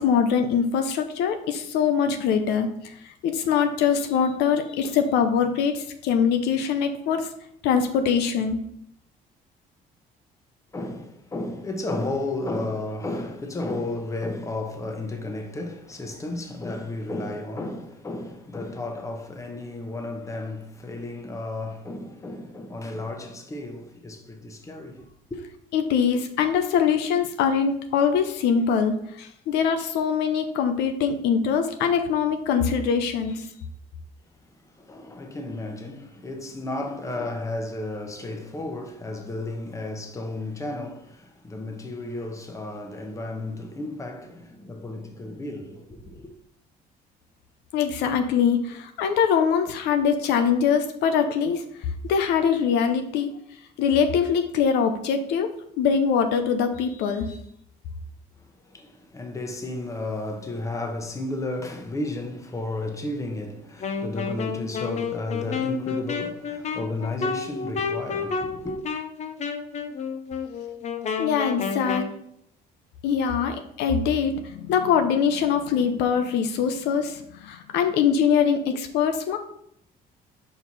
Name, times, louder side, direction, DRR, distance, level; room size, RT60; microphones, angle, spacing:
voice 1, 0.0-3.0 3.2-7.3 7.6-8.6 25.7-33.5 47.7-51.6 52.1-53.3 53.8-55.5 55.8-57.4 71.2-72.1 73.0-79.4, left 7 dB, 85° left, 0.7 m, -23 dB
voice 2, 10.7-25.4 34.6-46.3 58.6-68.8, left 2 dB, 20° left, 0.9 m, -33 dB
Wind instrument woodwind instrument, 63.8-72.1, left 5 dB, 45° left, 0.7 m, -30 dB
5.4 x 4.6 x 4.1 m
cardioid pair, 110°, 17 cm